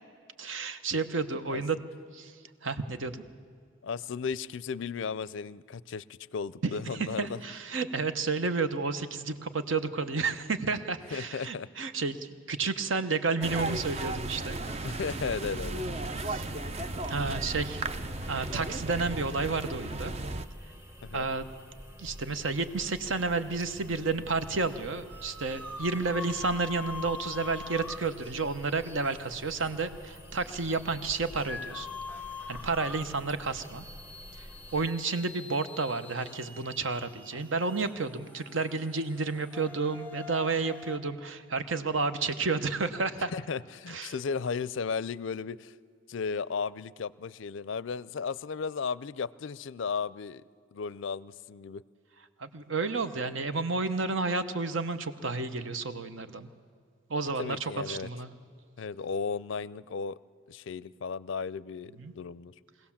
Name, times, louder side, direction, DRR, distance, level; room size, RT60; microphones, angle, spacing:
voice 1, 0.4-1.8 2.1-2.3 2.6-3.2 6.6-6.7 7.0-14.6 16.3-16.5 17.1-17.8 18.3-20.1 21.1-21.4 22.0-31.9 32.5-33.8 34.4-43.3 43.9-44.1 52.4-56.5 57.1-58.3 62.0-62.1, right 4 dB, 65° right, 10 dB, 0.9 m, -31 dB
voice 2, 3.8-6.0 6.3-7.4 11.1-11.7 14.8-16.1 21.0-21.3 43.2-45.7 46.1-50.4 50.7-51.8 57.4-58.1 58.8-60.2 60.5-62.5, left 5 dB, 65° left, 20 dB, 0.4 m, -35 dB
sound 1, 13.4-20.4, right 2 dB, 30° right, 0.6 m, -35 dB
sound 2, 16.3-34.9, equal, 15° right, 1.2 m, -47 dB
sound 3, 25.1-41.0, left 4 dB, 10° left, 0.6 m, -45 dB
23.5 x 16.5 x 7.2 m, 2.2 s
head